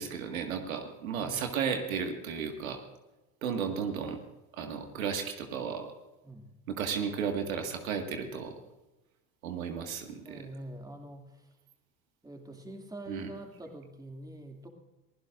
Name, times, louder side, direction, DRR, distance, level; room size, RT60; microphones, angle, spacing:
voice 1, 0.0-2.8 3.4-4.2 4.5-5.9 6.7-8.6 9.4-10.4 13.1-13.3, right 6 dB, 90° right, 4 dB, 1.9 m, -34 dB
voice 2, 10.2-11.5 12.2-14.7, right 1 dB, 10° right, 3 dB, 2.4 m, -45 dB
23.5 x 15.5 x 2.5 m, 1.0 s
hypercardioid pair, 90°, 40 cm